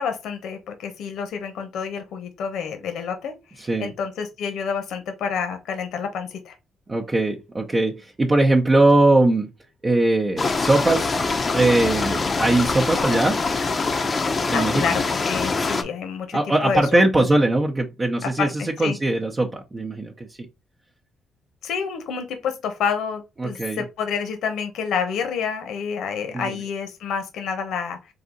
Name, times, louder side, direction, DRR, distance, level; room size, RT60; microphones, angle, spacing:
voice 1, 0.0-6.5 14.5-17.3 18.2-19.0 21.6-28.1, left 6 dB, 80° left, 1.0 m, -28 dB
voice 2, 3.6-3.9 6.9-9.5 9.8-11.2 11.5-13.4 14.5-14.8 16.3-20.3 23.4-23.8 26.3-26.5, right 2 dB, 25° right, 0.7 m, -20 dB
sound 1, 10.4-15.8, left 4 dB, 30° left, 0.6 m, -24 dB
3.9 x 2.7 x 3.8 m
cardioid pair, 105°, 0 cm